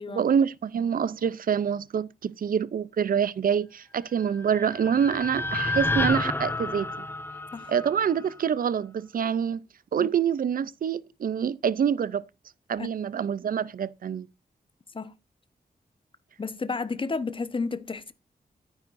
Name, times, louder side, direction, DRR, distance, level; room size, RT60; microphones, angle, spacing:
voice 1, 0.1-6.9 7.7-9.6 9.9-12.2 12.7-14.3, right 8 dB, 70° right, 0.5 m, -26 dB
sound 1, 4.2-8.5, left 2 dB, 15° left, 0.5 m, -30 dB
voice 2, 16.4-18.1, left 4 dB, 35° left, 1.0 m, -32 dB
12.0 x 9.8 x 2.6 m
wide cardioid pair, 115°, 15 cm